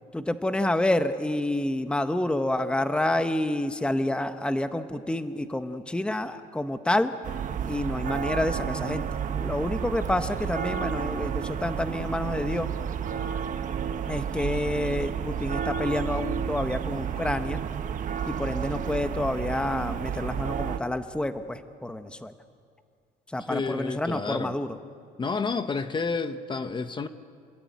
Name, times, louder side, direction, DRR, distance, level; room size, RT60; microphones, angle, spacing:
voice 1, 0.1-7.1 7.6-12.7 14.1-17.6 18.3-22.3 23.3-24.8, left 1 dB, 5° left, 9 dB, 1.1 m, -28 dB
sound 1, 7.2-20.8, right 8 dB, 50° right, 1.3 m, -31 dB
voice 2, 23.5-24.5 25.2-27.1, left 4 dB, 30° left, 10 dB, 1.2 m, -30 dB
28.0 x 21.0 x 9.4 m, 2.2 s
cardioid pair, 110°, 17 cm